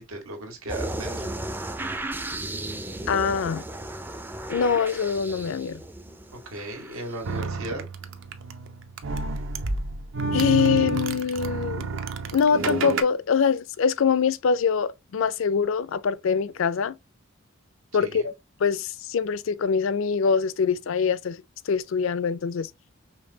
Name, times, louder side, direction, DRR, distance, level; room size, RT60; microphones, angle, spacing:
voice 1, 0.0-1.3 6.3-7.8 18.0-18.3, right 1 dB, 85° right, 1.7 m, -36 dB
sound 1, 0.7-7.3, right 1 dB, 10° right, 0.4 m, -35 dB
voice 2, 3.1-3.6 4.5-5.8 10.3-12.0 12.3-16.9 17.9-18.3 18.6-22.7, left 6 dB, 65° left, 0.4 m, -24 dB
sound 2, 7.2-13.0, right 3 dB, 60° right, 0.6 m, -29 dB
5.3 x 3.3 x 2.7 m
head